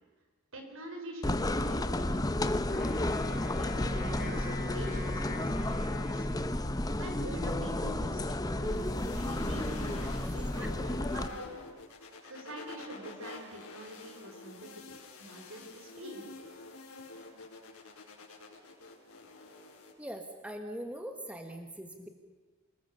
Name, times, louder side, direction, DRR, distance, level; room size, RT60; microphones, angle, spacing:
voice 1, 0.5-3.0 3.6-6.3 7.0-11.5 12.2-16.3, right 1 dB, 70° right, 3 dB, 4.9 m, -45 dB
sound 1, 1.2-11.3, left 1 dB, 15° left, 0.8 m, -32 dB
Wind instrument woodwind instrument, 2.7-7.1, left 3 dB, 50° left, 4.5 m, -44 dB
sound 2, 8.6-19.9, left 3 dB, 85° left, 5.4 m, -48 dB
voice 2, 10.2-10.7 20.0-22.1, equal, 5° right, 5 dB, 1.3 m, -42 dB
28.5 x 19.5 x 6.8 m, 1.3 s
head